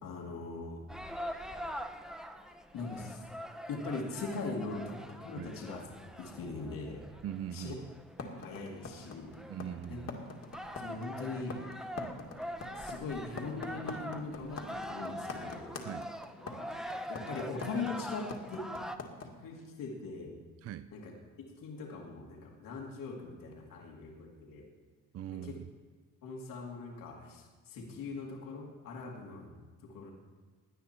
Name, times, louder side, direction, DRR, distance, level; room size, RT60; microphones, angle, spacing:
voice 1, 0.0-0.8 1.1-1.2 2.7-3.2 3.7-5.8 6.2-7.0 7.5-7.7 8.2-9.3 9.9-10.0 10.8-11.6 12.7-15.7 16.6-16.7 17.1-18.7 19.4-20.4 20.9-21.1 21.6-24.6 25.3-25.6 26.2-29.5 29.8-30.1, left 3 dB, 80° left, -1 dB, 2.4 m, -41 dB
sound 1, 0.9-19.0, equal, ahead, 0.8 m, -44 dB
voice 2, 7.2-7.9 9.5-10.1 15.8-16.1 20.6-20.9 25.1-25.7, right 10 dB, 45° right, 13 dB, 0.5 m, -41 dB
sound 2, 8.2-19.2, left 4 dB, 50° left, 2.1 m, -42 dB
17.5 x 9.9 x 4.4 m, 1.4 s
cardioid pair, 90°, 33 cm